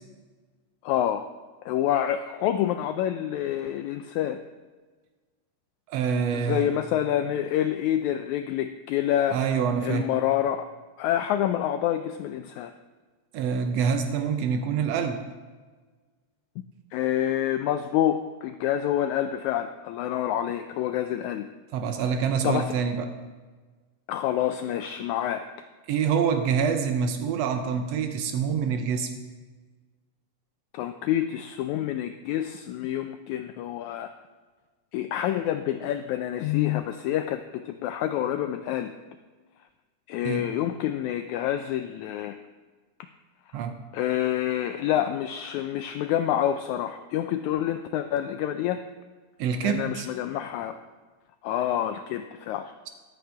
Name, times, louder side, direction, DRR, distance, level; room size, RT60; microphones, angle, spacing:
voice 1, 0.8-1.3 1.6-4.4 6.3-9.4 9.8-10.7 11.0-12.7 16.9-21.5 22.4-22.7 24.1-25.5 30.7-34.1 34.9-38.9 40.1-42.4 43.9-48.8 49.6-50.8 51.4-52.7, left 11 dB, 90° left, 8 dB, 1.6 m, -27 dB
voice 2, 5.9-6.7 9.3-10.1 13.3-15.2 21.7-23.1 25.9-29.1 40.2-40.5 43.5-43.7 49.4-50.1, right 6 dB, 85° right, 7 dB, 1.4 m, -26 dB
14.5 x 11.5 x 3.4 m, 1.4 s
omnidirectional pair, 3.9 m